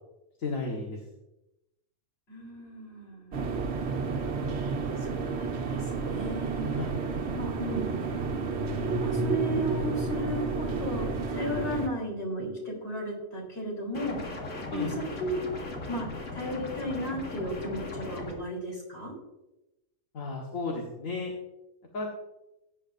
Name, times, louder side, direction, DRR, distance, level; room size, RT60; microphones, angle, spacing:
voice 1, 0.4-1.0 6.8-6.9 14.7-14.9 20.1-21.3 21.9-22.1, left 3 dB, 70° left, -1 dB, 1.9 m, -33 dB
voice 2, 2.3-3.5 5.0-6.7 7.3-8.2 9.0-15.3 15.9-19.1, right 1 dB, 45° left, -2 dB, 4.1 m, -35 dB
sound 1, 3.3-11.9, right 4 dB, 50° right, 1.2 m, -31 dB
sound 2, 13.9-18.3, left 2 dB, 85° left, 2.4 m, -38 dB
16.5 x 9.8 x 2.6 m, 0.93 s
omnidirectional pair, 1.5 m